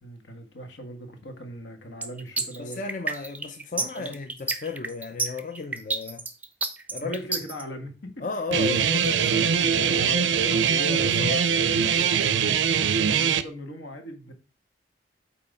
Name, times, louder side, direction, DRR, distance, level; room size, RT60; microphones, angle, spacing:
voice 1, 0.0-2.8 3.7-4.1 7.0-8.2 8.8-8.9 9.2-9.4 9.9-10.4 12.7-14.3, equal, 75° left, 1.6 m, -39 dB
sound 1, 2.0-7.6, right 3 dB, 10° right, 0.5 m, -29 dB
voice 2, 2.6-6.3 6.9-7.2 8.2-12.2, left 4 dB, 45° left, 0.5 m, -34 dB
Guitar, 8.5-13.4, right 7 dB, 75° right, 0.5 m, -22 dB
8.4 x 3.0 x 5.3 m
head